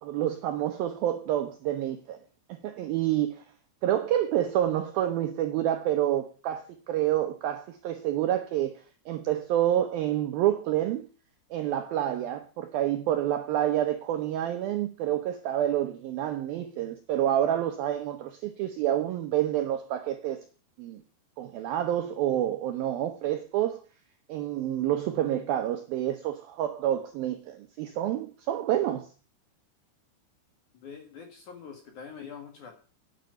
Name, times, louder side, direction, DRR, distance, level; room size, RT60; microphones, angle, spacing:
voice 1, 0.0-2.2 2.5-3.4 3.8-8.8 9.1-11.0 11.5-20.5 20.8-21.0 21.4-23.8 24.3-29.1, right 12 dB, 80° right, 2.1 m, -28 dB
voice 2, 30.8-32.8, left 6 dB, 55° left, 2.5 m, -44 dB
9.6 x 7.7 x 9.1 m
omnidirectional pair, 5.4 m